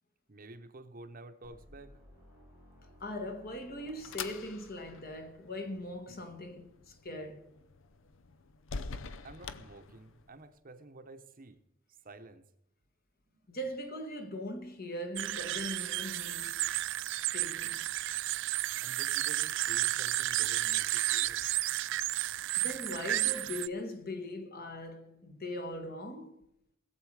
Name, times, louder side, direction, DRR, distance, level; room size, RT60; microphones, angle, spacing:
voice 1, 0.3-2.0 9.2-11.6 12.0-12.4 13.3-13.6 18.8-21.5, right 2 dB, 40° right, 0.9 m, -51 dB
sound 1, 1.4-5.4, equal, 85° left, 5.7 m, -58 dB
voice 2, 3.0-7.5 13.5-16.6 17.3-17.8 22.6-26.4, left 1 dB, 45° left, 1.6 m, -40 dB
sound 2, 3.1-10.5, left 5 dB, 65° left, 0.7 m, -46 dB
sound 3, 15.2-23.7, right 15 dB, 60° right, 0.4 m, -32 dB
21.0 x 7.5 x 4.8 m
head